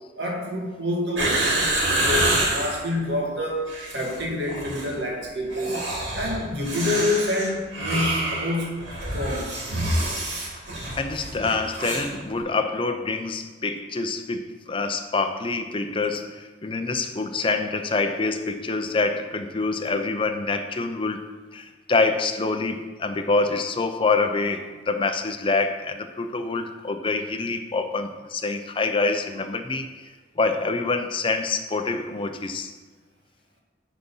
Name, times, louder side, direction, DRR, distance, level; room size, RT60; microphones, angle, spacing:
voice 1, 0.2-5.8 6.1-9.6, left 1 dB, 65° right, -1 dB, 1.9 m, -28 dB
sound 1, 1.2-2.8 3.6-4.2 4.5-4.9 5.5-12.1 12.4-12.5, right 1 dB, 85° right, 2.6 m, -27 dB
voice 2, 11.0-21.3 21.5-30.1 30.4-32.7, left 3 dB, 30° left, 7 dB, 0.5 m, -26 dB
9.8 x 4.0 x 5.4 m, 1.3 s
head